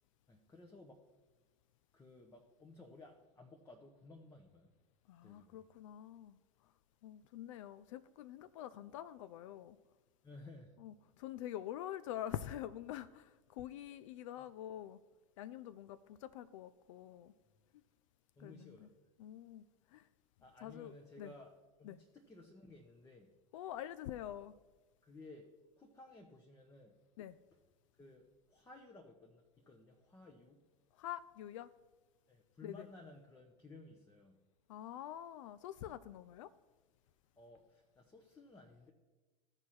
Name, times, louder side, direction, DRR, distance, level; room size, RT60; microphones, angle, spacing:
voice 1, 0.3-1.0 1.9-4.7 5.2-5.6 10.2-10.7 14.3-14.4 18.4-18.9 20.4-21.5 21.8-23.3 25.0-25.5 25.8-26.9 28.0-30.6 32.3-34.4 37.4-38.9, left 2 dB, 15° left, 2 dB, 0.9 m, -57 dB
voice 2, 5.1-6.7 7.0-9.8 10.8-15.0 15.4-17.3 18.4-18.9 19.2-20.1 20.6-21.3 21.8-22.0 23.5-24.5 27.2-27.4 30.9-31.7 32.6-32.9 34.7-36.5, left 12 dB, 60° left, 14 dB, 0.4 m, -46 dB
14.5 x 4.8 x 4.3 m, 1.2 s
hypercardioid pair, 90°, 19 cm